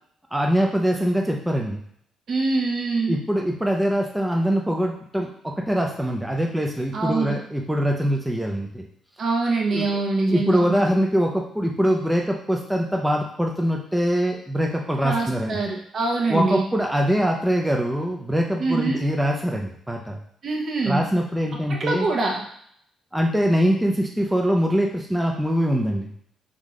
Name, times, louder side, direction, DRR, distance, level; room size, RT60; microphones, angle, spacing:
voice 1, 0.3-1.8 3.1-8.8 9.7-9.9 10.3-15.6 16.3-20.2 20.9-22.1 23.1-26.1, equal, 5° right, 1 dB, 0.6 m, -23 dB
voice 2, 2.3-3.2 6.9-7.4 9.2-10.8 15.0-16.7 18.6-19.0 20.4-21.0 21.7-22.4, right 3 dB, 55° right, 0 dB, 1.0 m, -24 dB
3.7 x 3.1 x 3.6 m, 0.67 s
cardioid pair, 90°, 0 cm